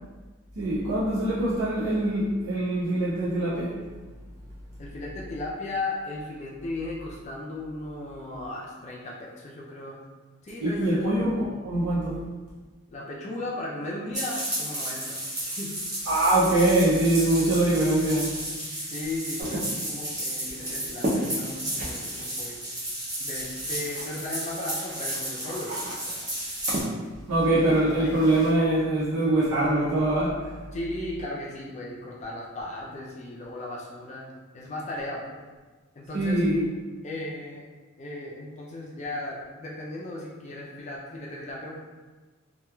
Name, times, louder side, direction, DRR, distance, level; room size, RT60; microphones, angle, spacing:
voice 1, 0.6-3.8 10.6-12.2 16.1-18.4 27.3-30.5 36.1-36.6, right 1 dB, 85° right, -9 dB, 0.6 m, -23 dB
voice 2, 4.8-10.0 10.4-11.1 12.9-15.8 18.9-22.6 23.2-26.3 27.4-28.2 30.7-34.3 34.5-35.4 36.0-36.4 37.0-37.6 38.0-41.8, left 2 dB, 30° left, -3 dB, 0.3 m, -36 dB
sound 1, 14.1-26.8, right 1 dB, 15° right, 0.8 m, -33 dB
sound 2, 19.4-24.3 24.6-28.6, equal, 35° right, 0.4 m, -35 dB
2.9 x 2.3 x 2.2 m, 1.3 s
head